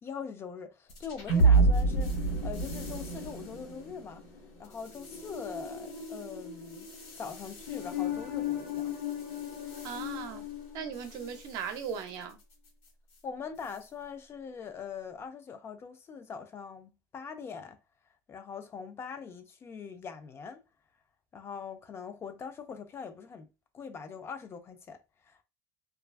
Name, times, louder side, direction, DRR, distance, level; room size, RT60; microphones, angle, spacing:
voice 1, 0.0-4.2 4.6-6.9 7.2-9.0 13.2-17.8 18.3-20.6 21.3-23.5 23.7-25.4, left 6 dB, 30° left, 0.4 m, -42 dB
sound 1, 0.9-11.4, right 2 dB, 70° left, 1.2 m, -30 dB
voice 2, 9.8-10.4 10.7-12.4, right 7 dB, 60° right, 0.6 m, -38 dB
2.4 x 2.2 x 2.3 m
supercardioid pair, 110°, 8 cm